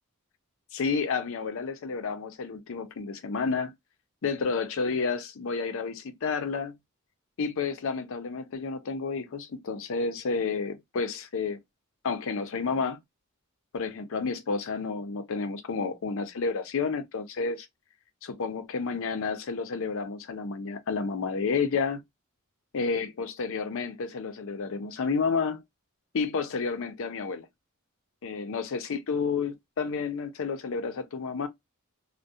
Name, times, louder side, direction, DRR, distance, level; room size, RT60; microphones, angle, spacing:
voice 1, 0.7-3.7 4.2-6.7 7.4-11.6 12.0-13.0 13.7-17.7 18.2-22.0 22.7-25.6 26.1-27.5 28.2-31.5, left 5 dB, 65° left, 0.5 m, -30 dB
2.3 x 2.1 x 2.6 m
head